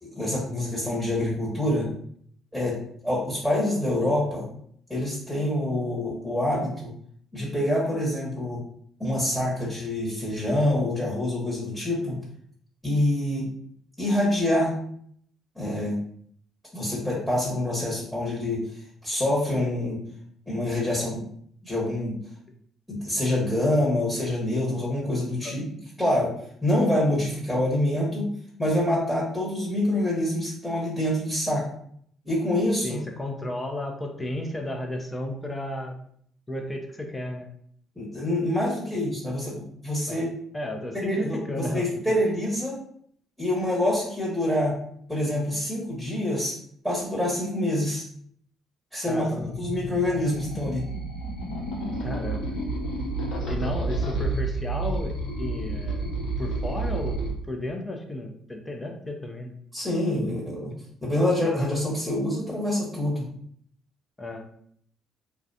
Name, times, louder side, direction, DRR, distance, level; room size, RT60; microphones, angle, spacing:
voice 1, 0.0-1.9 2.5-2.8 3.0-4.4 4.9-6.9 7.3-8.6 9.0-12.2 12.8-13.5 14.0-14.7 15.5-16.0 16.7-20.0 20.5-21.2 21.6-22.2 22.9-25.6 26.0-26.3 26.6-28.3 28.6-31.6 32.2-33.0 37.9-40.3 41.0-42.7 43.4-44.8 45.1-46.6 46.8-48.0 48.9-50.8 59.7-60.7 61.0-63.3, left 1 dB, ahead, -5 dB, 1.1 m, -26 dB
voice 2, 32.8-35.9 36.5-37.5 40.1-40.2 40.5-42.2 49.1-49.5 52.0-52.5 53.5-56.1 56.4-57.2 57.5-59.5 64.2-64.4, left 1 dB, 15° left, 3 dB, 0.6 m, -33 dB
sound 1, 49.4-57.3, right 2 dB, 70° left, 0.7 m, -30 dB
2.3 x 2.2 x 2.7 m, 0.65 s
hypercardioid pair, 55°, 0 cm